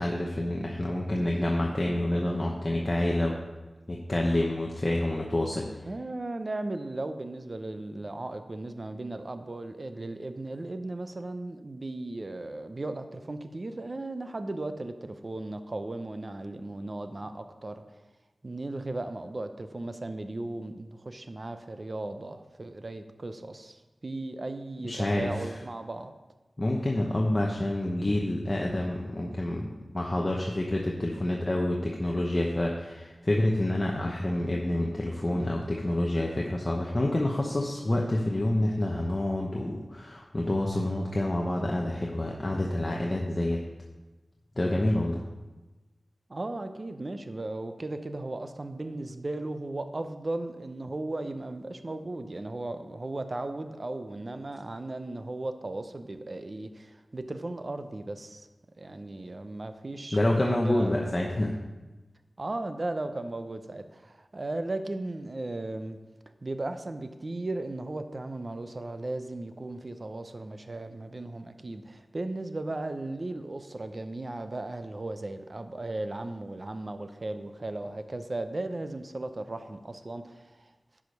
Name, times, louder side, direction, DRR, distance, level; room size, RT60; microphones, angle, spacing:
voice 1, 0.0-3.3 3.9-5.7 24.8-25.5 26.6-29.7 29.9-43.6 44.6-45.2 60.1-61.6, left 1 dB, 30° left, -1 dB, 0.9 m, -28 dB
voice 2, 5.9-17.8 18.4-26.1 46.3-58.5 58.8-61.1 62.4-66.0 66.4-80.7, right 2 dB, 45° right, 8 dB, 0.6 m, -36 dB
10.5 x 5.0 x 5.3 m, 1.1 s
wide cardioid pair, 85°, 0 cm